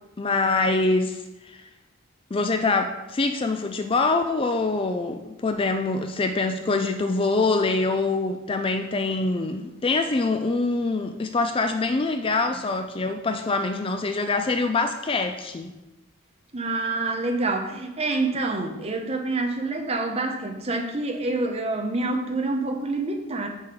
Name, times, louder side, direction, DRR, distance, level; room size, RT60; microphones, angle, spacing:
voice 1, 0.2-1.7 2.3-15.7, left 3 dB, 25° left, 7 dB, 0.4 m, -24 dB
voice 2, 16.5-23.5, right 2 dB, 30° right, 4 dB, 0.8 m, -27 dB
6.7 x 6.4 x 5.1 m, 1.0 s
head